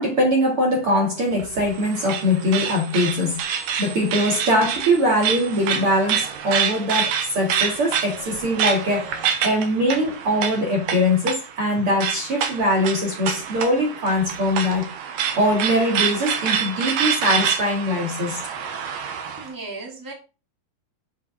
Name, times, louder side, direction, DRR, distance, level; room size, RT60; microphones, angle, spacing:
voice 1, 0.0-14.9 15.4-18.4, equal, 45° right, 2.7 m, -22 dB
sound 1, 1.3-19.5, right 7 dB, 80° right, 3.0 m, -27 dB
voice 2, 19.4-20.1, right 2 dB, 5° right, 2.6 m, -36 dB
8.2 x 5.4 x 6.2 m
omnidirectional pair, 4.0 m